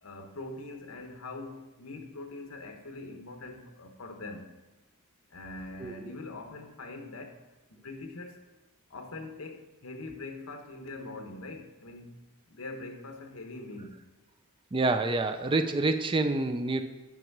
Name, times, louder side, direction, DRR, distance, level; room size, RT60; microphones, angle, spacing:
voice 1, 0.0-4.5 5.3-7.4 7.7-8.4 8.9-12.1 12.5-14.0, left 2 dB, 70° left, 4 dB, 1.1 m, -43 dB
voice 2, 14.7-16.8, right 2 dB, 25° right, 9 dB, 0.4 m, -27 dB
6.1 x 5.4 x 5.9 m, 1.1 s
head